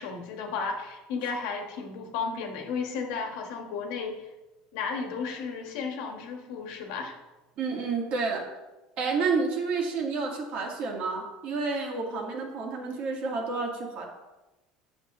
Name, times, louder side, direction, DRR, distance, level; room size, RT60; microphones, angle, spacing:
voice 1, 0.0-4.2 4.7-7.1, left 5 dB, 85° left, 3 dB, 1.5 m, -33 dB
voice 2, 7.6-8.4 9.0-14.1, right 4 dB, 50° right, 0 dB, 1.8 m, -30 dB
9.8 x 7.0 x 3.0 m, 1.0 s
cardioid pair, 145°, 3 cm